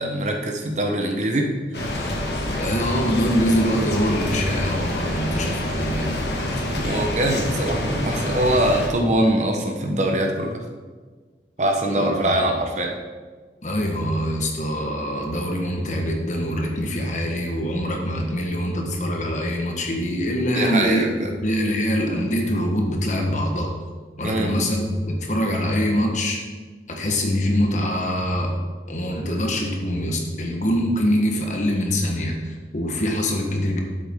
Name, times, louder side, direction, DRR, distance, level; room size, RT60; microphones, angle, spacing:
voice 1, 0.0-1.9 6.8-10.6 11.6-12.9 20.5-21.3 24.2-24.5, right 1 dB, 40° right, 2 dB, 1.1 m, -23 dB
sound 1, 1.7-8.9, left 1 dB, 70° left, 1.7 m, -27 dB
voice 2, 2.5-6.5 12.0-12.4 13.6-21.1 21.4-23.7 24.2-26.4 26.9-28.6 28.9-33.8, equal, 45° left, 1 dB, 1.4 m, -24 dB
11.0 x 7.9 x 3.8 m, 1.4 s
head